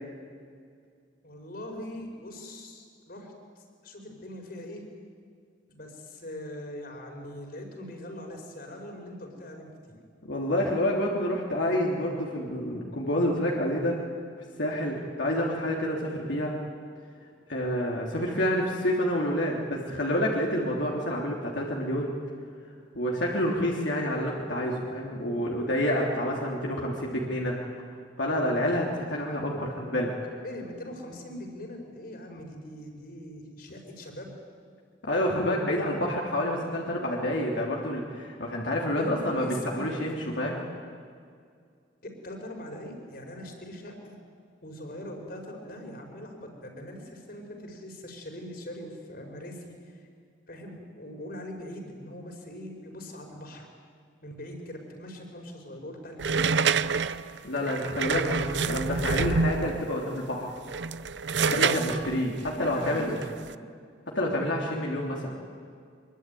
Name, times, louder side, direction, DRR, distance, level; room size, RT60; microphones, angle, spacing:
voice 1, 1.2-4.8 5.7-10.0 30.4-34.3 38.9-39.9 42.0-44.2 44.6-50.1 50.5-53.7 54.2-56.4 61.4-62.1 62.7-63.2, left 1 dB, 55° left, 3 dB, 5.0 m, -41 dB
voice 2, 10.2-14.0 14.6-16.5 17.5-22.1 22.9-27.6 28.2-30.1 35.0-40.6 57.4-60.5 61.5-63.2 64.1-65.3, left 1 dB, 80° left, -2 dB, 3.2 m, -28 dB
sound 1, 56.2-59.9 60.6-63.5, right 5 dB, 70° right, 0.7 m, -27 dB
24.5 x 23.0 x 9.3 m, 2.2 s
head